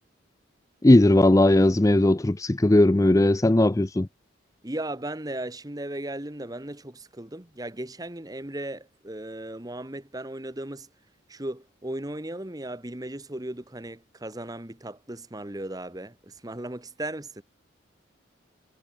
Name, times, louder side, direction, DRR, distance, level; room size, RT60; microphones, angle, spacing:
voice 1, 0.8-4.1, left 1 dB, 15° left, 0.5 m, -18 dB
voice 2, 4.6-10.9 11.3-17.4, right 1 dB, 20° right, 1.2 m, -36 dB
head